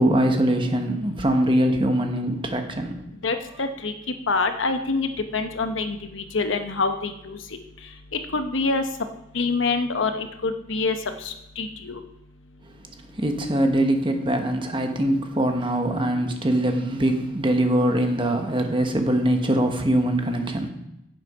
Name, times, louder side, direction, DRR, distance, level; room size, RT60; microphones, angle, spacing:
voice 1, 0.0-3.0 3.6-3.7 13.1-20.7, right 1 dB, 25° right, 5 dB, 1.0 m, -22 dB
voice 2, 3.2-3.9 4.3-7.4 8.3-8.8 9.3-11.0 11.2-12.0, left 3 dB, 70° left, 8 dB, 0.9 m, -26 dB
8.9 x 7.3 x 5.4 m, 0.87 s
head